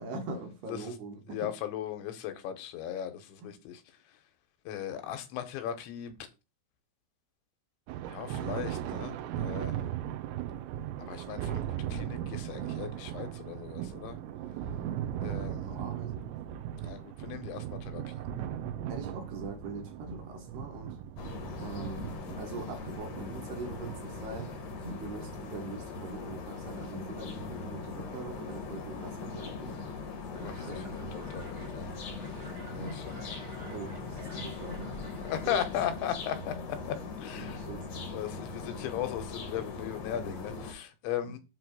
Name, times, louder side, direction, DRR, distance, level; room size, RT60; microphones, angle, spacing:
voice 1, 0.0-1.5 15.6-16.4 18.9-21.0 21.6-22.1 22.4-24.5 24.8-29.8 30.3-31.4 32.7-33.0 33.7-35.0 35.5-35.6 37.3-37.9 41.2-41.3, right 3 dB, 70° right, 3.4 m, -42 dB
voice 2, 1.3-3.8 4.7-6.1 8.1-9.8 11.0-11.6 11.9-14.2 15.2-15.8 16.8-18.3 30.4-32.0 32.7-33.3 35.2-37.6 38.1-41.4, left 10 dB, 85° left, 3.3 m, -37 dB
Thunder, 7.9-25.6, right 10 dB, 90° right, 3.0 m, -38 dB
sound 1, 21.2-40.7, left 4 dB, 65° left, 1.7 m, -40 dB
sound 2, 30.3-36.4, right 1 dB, 20° right, 1.1 m, -48 dB
7.8 x 3.1 x 6.1 m
omnidirectional pair, 5.1 m